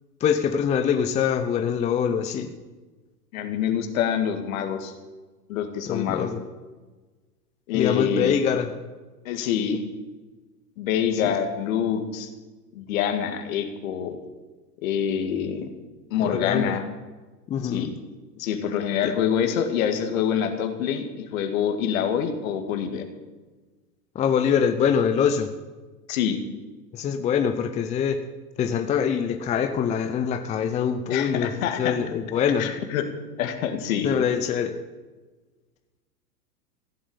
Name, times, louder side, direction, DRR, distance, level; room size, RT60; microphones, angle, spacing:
voice 1, 0.2-2.5 5.9-6.4 7.7-8.7 11.2-11.3 16.2-16.8 17.5-17.9 19.0-19.1 24.1-25.5 26.9-28.2 28.6-32.7 34.0-34.8, left 7 dB, 15° left, 8 dB, 0.6 m, -24 dB
voice 2, 3.3-4.9 5.5-6.3 7.7-8.3 9.3-9.8 10.8-12.3 12.7-14.2 14.8-15.7 16.1-16.8 17.6-17.9 18.4-23.0 26.1-26.4 31.1-32.0 32.6-33.1 33.4-34.1, left 8 dB, 55° left, 7 dB, 2.1 m, -26 dB
15.5 x 7.3 x 8.9 m, 1.3 s
hypercardioid pair, 105°, 49 cm